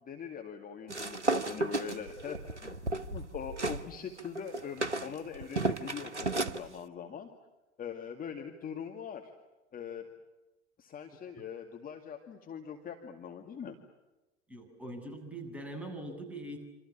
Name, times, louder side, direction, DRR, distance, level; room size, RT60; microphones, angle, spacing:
voice 1, 0.0-2.8 3.1-7.3 7.8-9.3 9.7-10.1 10.8-13.8, left 7 dB, 25° left, 3 dB, 2.3 m, -42 dB
sound 1, 0.9-3.8 4.2-6.6, right 2 dB, 90° right, 1.1 m, -33 dB
voice 2, 14.5-16.6, right 1 dB, 5° right, 2 dB, 7.6 m, -42 dB
27.5 x 27.0 x 7.3 m, 1.1 s
figure-of-eight pair, 80°, 34 cm